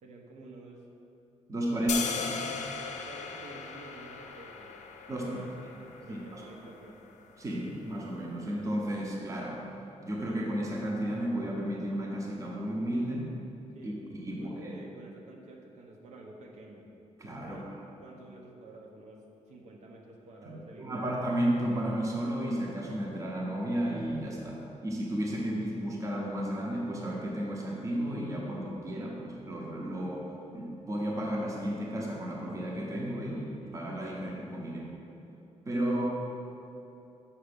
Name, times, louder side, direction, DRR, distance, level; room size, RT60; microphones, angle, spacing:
voice 1, 0.0-0.8 1.7-2.1 3.0-4.7 5.1-7.0 13.7-14.0 14.3-16.9 17.4-17.6 18.0-19.2 19.5-21.1, right 2 dB, 70° right, -1 dB, 0.8 m, -50 dB
voice 2, 1.5-2.5 5.1-5.3 6.1-6.4 7.4-9.6 10.0-13.3 13.8-13.9 14.3-14.7 17.2-17.8 20.4-34.9 35.7-36.0, right 1 dB, 25° right, -2 dB, 0.7 m, -33 dB
sound 1, 1.9-8.0, left 5 dB, 80° left, 0.5 m, -38 dB
5.8 x 5.1 x 5.1 m, 2.9 s
wide cardioid pair, 180°, 12 cm